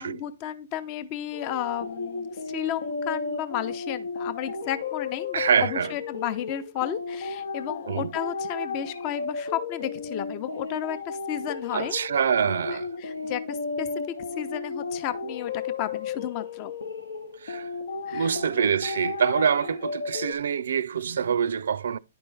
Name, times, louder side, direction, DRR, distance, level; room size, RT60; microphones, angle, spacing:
voice 1, 0.0-11.9 13.0-16.7 18.1-18.3, left 11 dB, 40° left, 0.6 m, -33 dB
sound 1, 1.3-20.3, left 4 dB, 80° left, 0.8 m, -34 dB
voice 2, 5.3-5.9 7.9-8.1 11.7-12.9 17.4-17.7 18.1-22.0, right 7 dB, 75° right, 0.3 m, -25 dB
10.0 x 4.4 x 3.3 m
hypercardioid pair, 130°, 0 cm